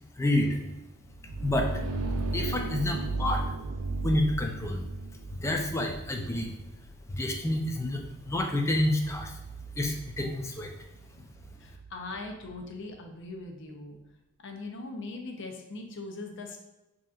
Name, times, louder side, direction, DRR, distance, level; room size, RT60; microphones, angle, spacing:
voice 1, 0.2-0.6 1.4-1.8 2.3-3.4 4.0-4.9 5.3-6.6 7.1-9.3 9.8-10.7, left 1 dB, 15° left, 3 dB, 0.4 m, -29 dB
sound 1, 1.0-12.7, right 2 dB, 90° right, 0.5 m, -36 dB
voice 2, 11.6-14.0 14.4-16.6, left 2 dB, 60° left, 3 dB, 0.6 m, -40 dB
5.0 x 2.9 x 2.4 m, 0.97 s
head